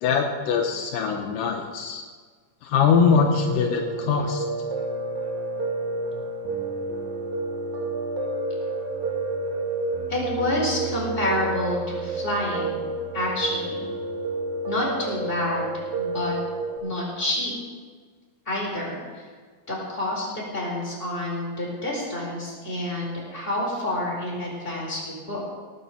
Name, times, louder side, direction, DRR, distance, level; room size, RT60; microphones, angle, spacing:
voice 1, 0.0-2.0 2.6-4.5, left 6 dB, 80° left, 3 dB, 2.6 m, -22 dB
Piano, 3.1-16.8, right 2 dB, 85° right, 3.9 m, -30 dB
voice 2, 10.1-12.8 13.1-13.9 14.6-16.3 16.8-17.5 18.5-19.3 19.7-25.5, left 1 dB, 15° left, -4 dB, 4.5 m, -28 dB
18.0 x 7.4 x 7.0 m, 1.5 s
omnidirectional pair, 3.9 m